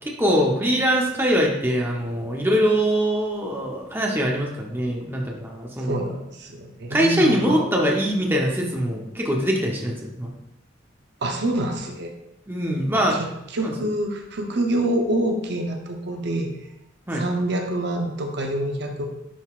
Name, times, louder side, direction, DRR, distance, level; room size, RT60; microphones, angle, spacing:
voice 1, 0.0-6.1 6.9-10.3 12.5-13.2 13.6-13.7 17.1-17.2, equal, 10° right, -1 dB, 0.8 m, -23 dB
voice 2, 5.8-7.6 11.2-12.1 12.9-16.5 17.1-19.0, right 1 dB, 55° right, 3 dB, 0.7 m, -26 dB
10.0 x 3.9 x 2.4 m, 0.83 s
head